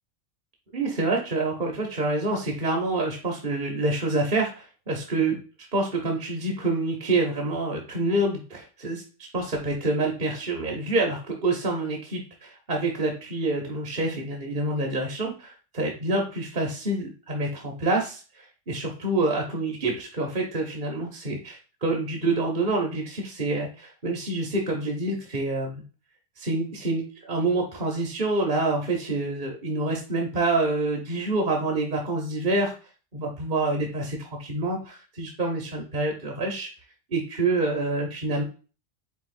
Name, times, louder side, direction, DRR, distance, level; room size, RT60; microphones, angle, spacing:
voice 1, 0.7-5.4 5.7-9.0 9.3-25.8 26.4-32.7 33.1-36.7 37.1-38.4, right 2 dB, 45° right, 1 dB, 0.8 m, -27 dB
4.7 x 3.8 x 2.5 m, 0.36 s
omnidirectional pair, 1.3 m